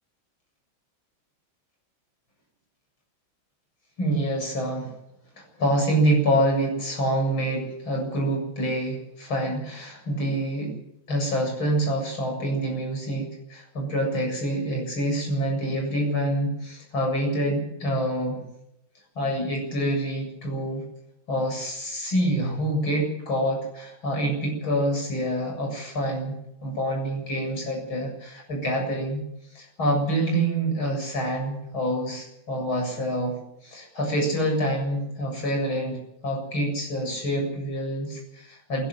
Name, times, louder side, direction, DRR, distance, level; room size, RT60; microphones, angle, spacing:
voice 1, 4.0-4.9 5.4-10.7 11.1-18.4 19.1-20.8 21.3-29.2 29.5-33.4 33.6-38.9, right 1 dB, 90° left, 1 dB, 8.5 m, -26 dB
28.0 x 12.0 x 7.8 m, 0.80 s
omnidirectional pair, 2.2 m